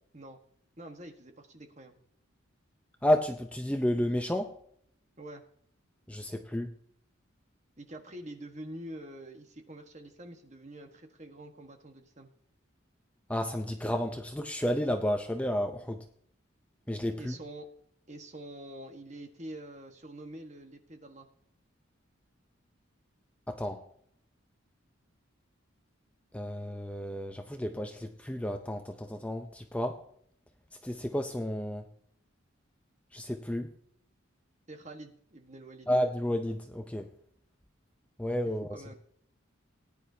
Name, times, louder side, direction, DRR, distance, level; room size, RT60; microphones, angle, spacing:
voice 1, 0.8-1.9 5.2-5.4 7.8-12.3 17.2-17.7 18.1-21.3 34.7-35.9 38.7-38.9, right 1 dB, 35° right, 5 dB, 1.4 m, -46 dB
voice 2, 3.0-4.5 6.1-6.7 13.3-16.0 16.9-17.3 23.5-23.8 26.3-30.0 30.8-31.8 33.1-33.7 35.9-37.1 38.2-38.8, equal, 5° left, 5 dB, 0.6 m, -31 dB
18.5 x 10.0 x 2.8 m, 0.65 s
head